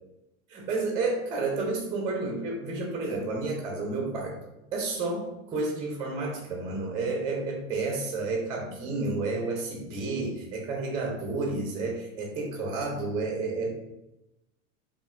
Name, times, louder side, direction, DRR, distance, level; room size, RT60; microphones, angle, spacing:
voice 1, 0.5-4.3 4.7-13.7, right 3 dB, 10° right, -1 dB, 0.4 m, -31 dB
4.0 x 2.5 x 3.5 m, 0.93 s
supercardioid pair, 140°, 42 cm